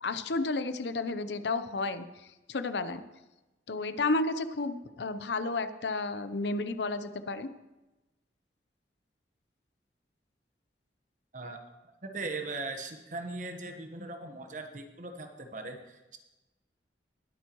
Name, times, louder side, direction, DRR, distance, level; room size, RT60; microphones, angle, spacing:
voice 1, 0.0-2.1 2.5-3.0 3.7-7.5, left 3 dB, 75° left, 11 dB, 0.7 m, -32 dB
voice 2, 12.0-16.2, right 3 dB, 45° right, 5 dB, 1.2 m, -39 dB
20.0 x 9.1 x 3.0 m, 1.1 s
head